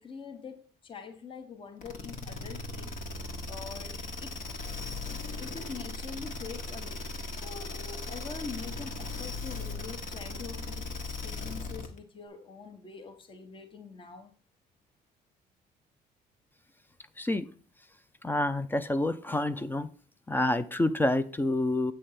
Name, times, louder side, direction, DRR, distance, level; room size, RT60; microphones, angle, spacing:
voice 1, 0.0-2.9 3.5-4.4 5.4-7.1 7.3-14.3, left 5 dB, 30° left, 0.9 m, -44 dB
sound 1, 1.8-12.0, left 2 dB, 55° left, 1.2 m, -38 dB
voice 2, 18.2-19.9 20.3-21.9, left 1 dB, 10° left, 0.4 m, -28 dB
7.6 x 3.4 x 5.6 m
cardioid pair, 110°, 17 cm